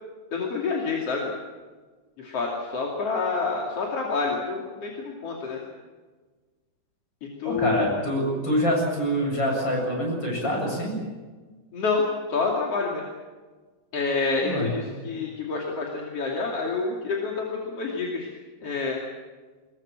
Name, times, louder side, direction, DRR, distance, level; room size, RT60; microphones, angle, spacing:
voice 1, 0.3-1.3 2.2-5.6 7.2-7.9 11.7-13.0 13.9-18.3 18.6-19.0, left 4 dB, 40° left, -1 dB, 2.9 m, -28 dB
voice 2, 7.4-11.0 14.4-14.7, equal, 25° left, 0 dB, 8.1 m, -25 dB
24.5 x 21.5 x 7.6 m, 1.4 s
omnidirectional pair, 5.3 m